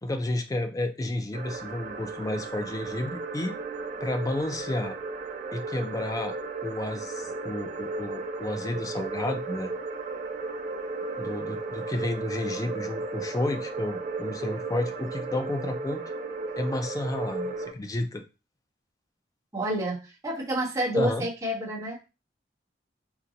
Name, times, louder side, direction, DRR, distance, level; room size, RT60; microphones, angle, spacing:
voice 1, 0.0-3.6 4.0-5.0 5.5-6.3 6.6-9.7 11.2-16.0 16.6-18.2 20.9-21.3, left 1 dB, 20° left, 7 dB, 0.3 m, -31 dB
sound 1, 1.3-17.7, right 3 dB, 40° right, 0.4 m, -35 dB
voice 2, 19.5-22.1, right 1 dB, 20° right, -5 dB, 1.1 m, -29 dB
3.7 x 2.2 x 2.8 m, 0.30 s
head